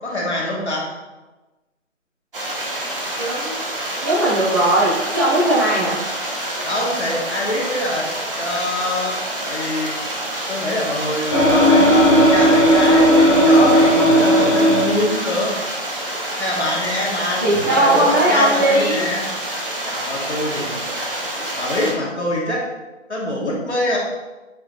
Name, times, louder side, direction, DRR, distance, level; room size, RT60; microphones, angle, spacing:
voice 1, 0.0-0.9 6.6-8.1 8.4-9.1 9.4-9.9 10.5-15.6 16.4-19.2 19.9-20.7 21.6-22.6 23.1-24.0, left 1 dB, 60° left, -3 dB, 2.3 m, -24 dB
sound 1, 2.3-21.9, right 1 dB, 45° right, 1.5 m, -27 dB
voice 2, 3.2-3.6 4.0-6.0 17.4-19.0, right 1 dB, 15° right, -8 dB, 1.1 m, -18 dB
sound 2, 11.3-15.0, equal, 20° left, 1.4 m, -14 dB
8.6 x 4.8 x 3.1 m, 1.1 s
figure-of-eight pair, 155°, 38 cm